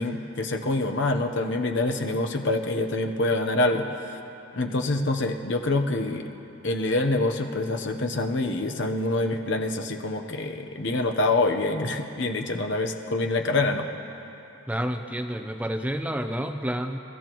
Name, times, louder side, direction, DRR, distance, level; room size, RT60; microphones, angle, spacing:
voice 1, 0.0-3.9 4.6-6.3 6.6-13.9, left 2 dB, 55° left, 4 dB, 0.9 m, -26 dB
voice 2, 14.7-17.0, equal, 5° right, 6 dB, 0.6 m, -29 dB
29.0 x 14.5 x 3.1 m, 2.9 s
head